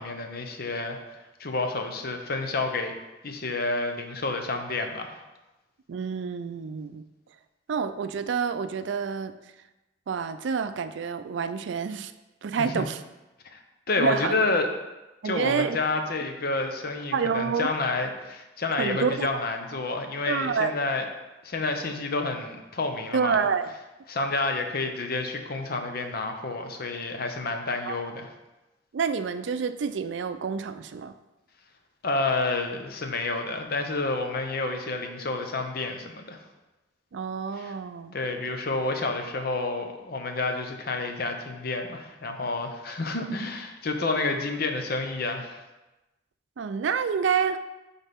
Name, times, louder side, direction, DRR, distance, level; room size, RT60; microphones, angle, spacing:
voice 1, 0.0-2.9 3.2-5.2 12.6-12.8 13.5-13.6 13.9-14.7 15.2-21.0 21.4-23.4 24.1-28.3 32.0-36.4 37.6-37.7 38.1-45.6, left 3 dB, 55° left, 5 dB, 0.8 m, -29 dB
voice 2, 5.9-7.0 7.7-9.3 10.1-12.1 12.4-13.0 14.0-14.4 15.2-15.8 17.1-17.7 18.8-19.4 20.3-20.7 23.1-23.7 27.9-28.0 28.9-31.1 37.1-38.2 46.6-47.6, right 6 dB, 70° right, 11 dB, 0.4 m, -28 dB
9.8 x 4.0 x 3.6 m, 1.0 s
head